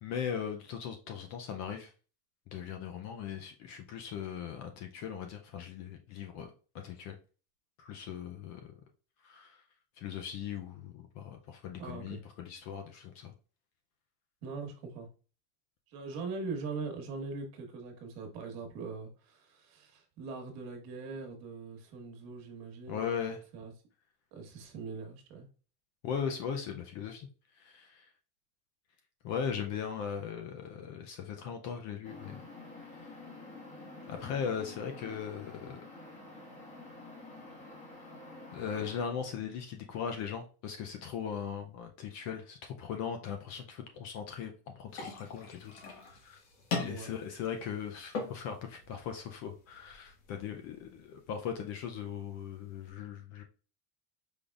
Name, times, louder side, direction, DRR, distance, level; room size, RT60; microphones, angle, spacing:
voice 1, 0.0-1.9 2.5-6.5 6.7-7.2 7.8-8.7 9.2-9.6 10.0-13.3 22.9-23.4 26.0-27.3 27.6-28.0 29.2-32.4 33.0-33.1 34.1-35.8 38.5-46.4 46.7-53.4, left 7 dB, 35° left, 5 dB, 0.5 m, -39 dB
voice 2, 11.8-12.2 14.4-15.1 15.9-23.1 23.5-23.7 24.3-25.5 46.8-47.2, right 4 dB, 50° right, 3 dB, 1.6 m, -41 dB
sound 1, 32.0-39.0, left 2 dB, 15° left, 1.3 m, -49 dB
sound 2, 44.9-52.9, left 4 dB, 55° left, 1.6 m, -43 dB
5.1 x 3.9 x 2.3 m, 0.37 s
cardioid pair, 165°, 48 cm